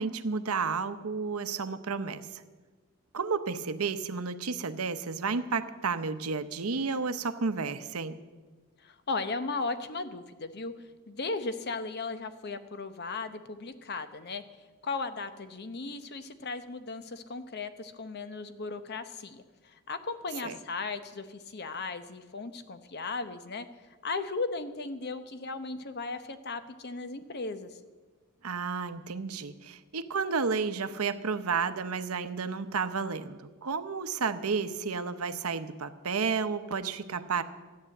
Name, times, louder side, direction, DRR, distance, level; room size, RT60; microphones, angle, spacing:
voice 1, 0.0-2.4 3.1-8.2 20.4-20.6 28.4-37.4, right 5 dB, 90° right, 11 dB, 0.8 m, -32 dB
voice 2, 8.8-10.7 11.1-14.4 14.8-19.4 19.9-23.7 24.0-27.7, left 3 dB, 50° left, 11 dB, 0.9 m, -36 dB
13.5 x 9.5 x 7.7 m, 1.3 s
head